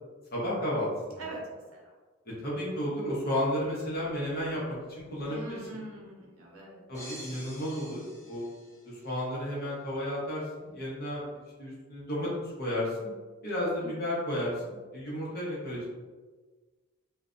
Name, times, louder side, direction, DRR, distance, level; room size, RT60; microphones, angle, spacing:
voice 1, 0.3-1.2 2.4-5.8 6.9-8.4 9.0-13.1 13.4-16.0, left 1 dB, 45° left, -6 dB, 0.8 m, -33 dB
voice 2, 1.2-1.8 5.3-6.8 13.8-13.9, right 2 dB, 75° right, -3 dB, 0.7 m, -42 dB
sound 1, 6.9-9.2, equal, 15° left, 0.4 m, -48 dB
2.4 x 2.1 x 2.4 m, 1.4 s
head